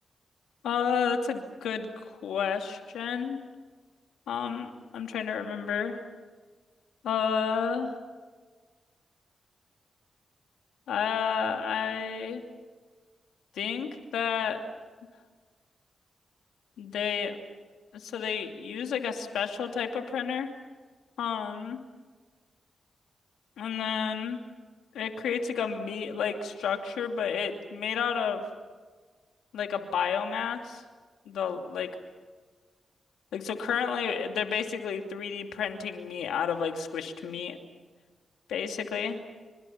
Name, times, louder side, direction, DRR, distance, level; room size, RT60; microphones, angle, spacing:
voice 1, 0.6-3.4 4.3-6.0 7.0-8.0 10.9-12.4 13.5-14.6 16.8-17.3 17.9-20.5 21.2-21.8 23.6-24.4 24.9-28.4 29.5-30.8 31.3-31.9 33.3-37.6 38.5-39.2, left 7 dB, 90° left, 4 dB, 2.7 m, -31 dB
29.0 x 26.5 x 5.9 m, 1.4 s
supercardioid pair, 50°, 0 cm